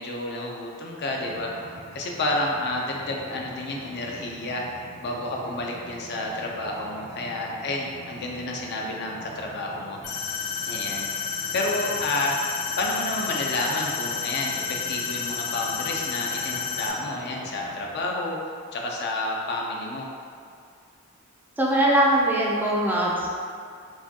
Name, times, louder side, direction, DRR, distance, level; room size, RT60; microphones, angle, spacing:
voice 1, 0.0-1.5 1.9-10.0 10.7-11.1 11.5-12.4 12.8-18.4 18.7-20.1, left 2 dB, 50° left, -1 dB, 0.5 m, -30 dB
Mechanisms, 1.0-17.9, right 1 dB, 60° right, 0.8 m, -45 dB
sound 1, 10.0-16.9, left 6 dB, 75° left, 0.8 m, -31 dB
voice 2, 21.6-23.3, right 1 dB, 10° right, -4 dB, 0.4 m, -21 dB
4.6 x 2.2 x 2.8 m, 2.3 s
head